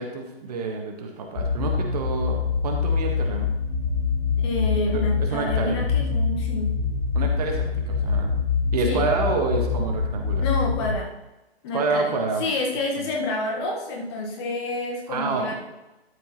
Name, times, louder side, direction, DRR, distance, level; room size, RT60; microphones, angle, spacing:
voice 1, 0.0-3.5 4.9-5.8 7.1-8.3 8.7-10.5 11.7-12.4 13.0-13.1 15.1-15.5, right 4 dB, 35° right, 2 dB, 1.6 m, -28 dB
sound 1, 1.4-10.9, left 5 dB, 5° left, 0.5 m, -25 dB
voice 2, 4.4-6.7 8.8-9.1 10.4-11.1 11.6-12.1 12.4-15.5, left 2 dB, 25° left, -1 dB, 1.5 m, -28 dB
12.5 x 6.9 x 3.1 m, 0.99 s
figure-of-eight pair, 140°, 32 cm